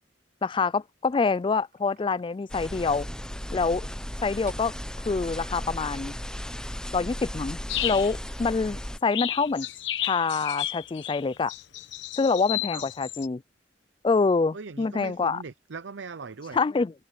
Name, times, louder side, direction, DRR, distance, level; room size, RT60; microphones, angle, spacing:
voice 1, 0.4-3.1 3.5-3.9 4.2-4.7 5.1-6.1 6.9-9.7 10.0-11.5 12.1-13.4 14.0-15.4 16.5-16.9, left 4 dB, 25° left, 0.3 m, -26 dB
sound 1, 1.0-6.4, right 3 dB, 55° right, 4.3 m, -56 dB
sound 2, 2.5-9.0, equal, 5° left, 0.7 m, -36 dB
sound 3, 7.7-8.2 8.8-8.9 9.1-13.3, left 12 dB, 75° left, 1.0 m, -32 dB
voice 2, 14.5-16.6, right 4 dB, 75° right, 0.7 m, -40 dB
head